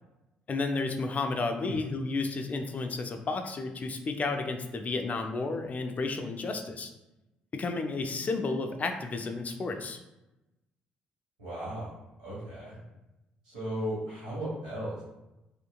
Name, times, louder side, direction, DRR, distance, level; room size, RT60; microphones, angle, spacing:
voice 1, 0.5-6.9 7.5-10.0, left 3 dB, 40° left, 5 dB, 0.3 m, -32 dB
voice 2, 11.4-11.9 12.2-12.8 13.4-15.0, right 1 dB, 90° right, -8 dB, 1.1 m, -36 dB
2.7 x 2.5 x 2.2 m, 0.97 s
hypercardioid pair, 50°, 4 cm